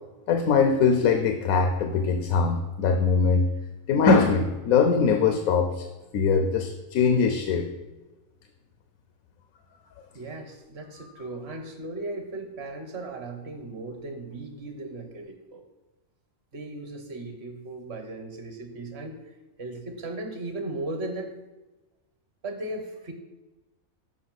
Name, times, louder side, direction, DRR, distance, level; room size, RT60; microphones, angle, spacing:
voice 1, 0.3-3.5 3.9-5.8 6.1-7.7 11.0-11.1, left 5 dB, 90° left, 6 dB, 1.2 m, -22 dB
voice 2, 10.1-15.7 16.5-19.2 19.6-21.3 22.4-23.1, right 2 dB, 50° right, 6 dB, 1.3 m, -37 dB
7.2 x 5.6 x 6.1 m, 1.1 s
omnidirectional pair, 1.4 m